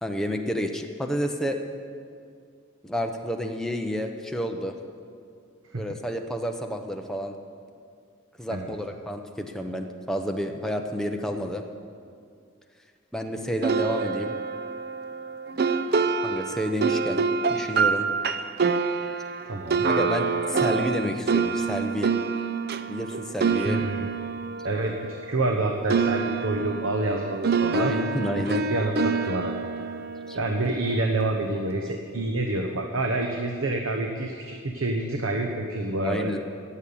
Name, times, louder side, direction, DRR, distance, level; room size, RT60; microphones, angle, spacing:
voice 1, 0.0-1.6 2.8-4.7 5.7-7.3 8.4-11.6 13.1-14.3 16.2-18.1 19.9-22.1 22.9-23.8 27.7-28.7 30.3-30.4 36.0-36.4, equal, ahead, 3 dB, 0.8 m, -30 dB
sound 1, 13.6-25.6 25.9-31.1, right 5 dB, 50° right, 0.5 m, -27 dB
voice 2, 19.4-19.9 23.6-24.1 24.6-27.9 28.4-29.5 30.3-36.4, right 2 dB, 85° right, 3 dB, 1.0 m, -28 dB
16.0 x 7.3 x 8.6 m, 2.3 s
head